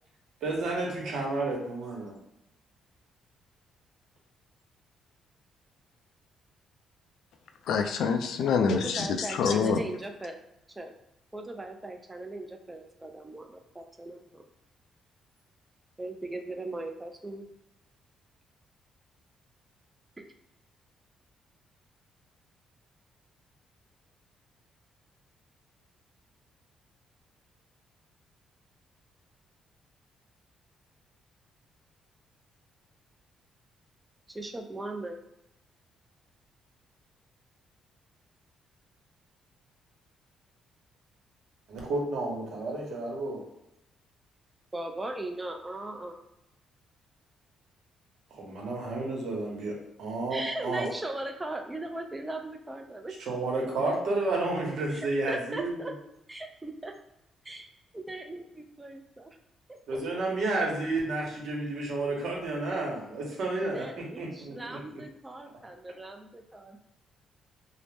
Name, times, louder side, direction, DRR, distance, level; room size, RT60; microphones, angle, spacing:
voice 1, 0.4-2.1 41.7-43.4 48.3-50.8 53.3-55.7 59.9-63.9 64.2-64.8, right 2 dB, 70° right, -2 dB, 1.0 m, -31 dB
voice 2, 7.7-9.8, left 5 dB, 75° left, 7 dB, 0.3 m, -26 dB
voice 3, 8.7-10.4 10.8-10.9 11.3-14.5 16.0-17.5 20.2-20.3 34.3-35.2 44.7-46.2 50.3-53.1 54.9-55.9 56.3-56.9 57.4-57.7 57.9-59.4 59.7-60.2 63.6-66.8, right 2 dB, 15° right, 4 dB, 0.4 m, -38 dB
2.7 x 2.1 x 3.2 m, 0.84 s
cardioid pair, 90°, 0 cm